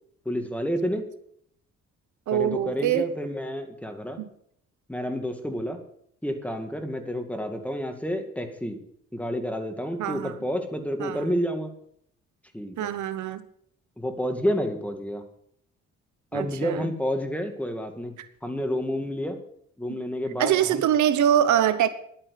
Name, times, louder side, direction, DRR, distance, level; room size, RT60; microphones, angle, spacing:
voice 1, 0.3-1.1 2.3-4.2 4.9-5.8 6.2-8.8 9.1-11.7 12.5-12.9 14.0-15.2 16.3-18.1 18.4-19.4 19.8-20.9, equal, 5° left, 2.1 m, -29 dB
voice 2, 2.3-3.1 4.2-4.3 10.0-10.4 11.0-11.3 12.8-13.4 16.3-16.9 18.2-18.3 19.9-20.0 20.4-21.9, right 10 dB, 75° right, 0.9 m, -24 dB
11.0 x 9.0 x 6.6 m
cardioid pair, 90°, 30 cm